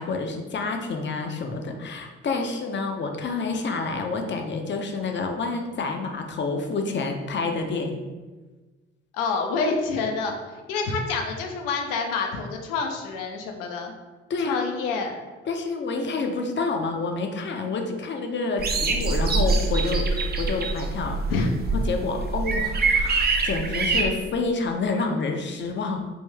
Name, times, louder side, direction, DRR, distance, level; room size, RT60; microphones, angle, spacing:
voice 1, 0.0-8.0 14.3-14.6 15.5-21.5 21.7-26.1, left 3 dB, 35° left, 4 dB, 0.6 m, -28 dB
voice 2, 9.1-10.3 10.7-13.9 14.4-15.2 16.1-16.2 21.3-21.5, left 4 dB, 70° left, 3 dB, 0.6 m, -27 dB
sound 1, 18.6-24.0, right 3 dB, 30° right, 0.5 m, -24 dB
3.5 x 2.5 x 3.3 m, 1.3 s
hypercardioid pair, 45°, 34 cm